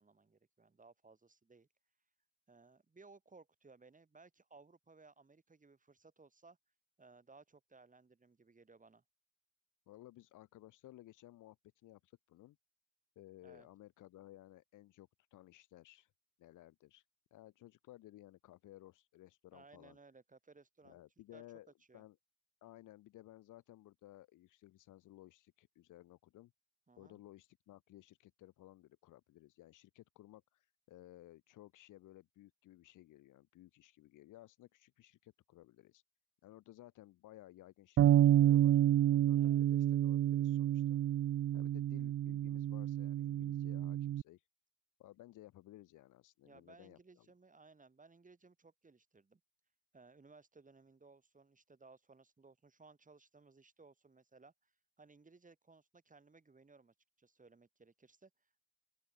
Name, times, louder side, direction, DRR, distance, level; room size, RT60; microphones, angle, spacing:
voice 1, 0.0-1.7 2.5-6.6 7.0-9.0 13.4-13.7 19.5-21.0 21.3-21.4 21.9-22.0 26.9-27.2 39.3-39.6 46.4-49.4 49.9-54.7 55.0-58.3, right 4 dB, 25° right, 8.0 m, -62 dB
voice 2, 9.9-12.6 13.2-16.1 16.4-17.0 17.3-20.0 20.8-22.2 22.6-26.5 27.0-36.0 36.4-38.8 39.1-41.0 41.5-44.5 45.0-47.3, left 15 dB, 90° left, 5.8 m, -58 dB
Bass guitar, 38.0-44.2, right 12 dB, 55° right, 0.6 m, -29 dB
open air
cardioid pair, 90°, 30 cm